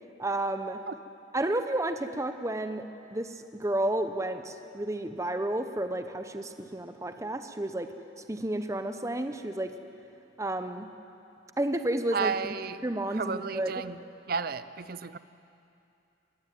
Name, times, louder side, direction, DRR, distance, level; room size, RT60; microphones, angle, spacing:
voice 1, 0.2-0.8 1.3-2.8 3.1-7.9 8.3-9.7 10.4-10.9 11.6-12.5 12.8-13.7, right 1 dB, 15° right, 8 dB, 0.8 m, -31 dB
voice 2, 12.1-12.8 13.2-14.0 14.3-15.2, right 5 dB, 55° right, 14 dB, 0.6 m, -32 dB
22.0 x 15.5 x 9.3 m, 2.7 s
head